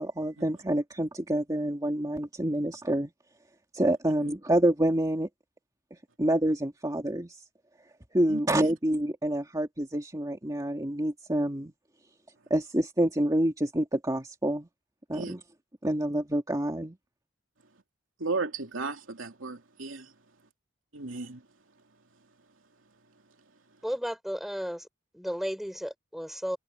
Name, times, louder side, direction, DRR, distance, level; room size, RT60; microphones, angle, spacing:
voice 1, 0.0-3.1 3.7-5.3 6.2-7.4 8.1-11.7 12.5-14.7 15.1-15.4 15.8-17.0, right 1 dB, 20° right, 2.4 m, -27 dB
voice 2, 18.2-20.1 20.9-21.4, right 3 dB, 80° right, 2.9 m, -34 dB
voice 3, 23.8-24.9 25.1-26.6, equal, ahead, 4.9 m, -33 dB
head